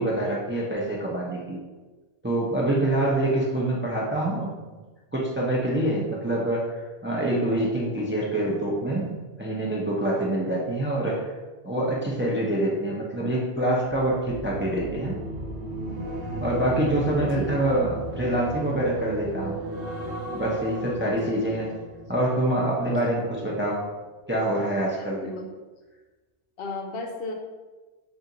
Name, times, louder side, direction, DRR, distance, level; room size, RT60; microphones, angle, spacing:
voice 1, 0.0-1.6 2.2-4.7 5.1-6.6 7.0-11.2 11.6-15.2 16.4-19.6 20.3-21.7 22.1-23.8 24.3-25.2, right 1 dB, 15° right, -4 dB, 0.5 m, -25 dB
sound 1, 13.9-23.2 23.5-23.9, right 1 dB, 70° right, 0.9 m, -35 dB
voice 2, 17.2-17.6 21.2-21.3 25.2-25.5 26.6-27.3, left 2 dB, 70° left, 3 dB, 0.7 m, -34 dB
4.2 x 2.5 x 3.8 m, 1.3 s
omnidirectional pair, 1.1 m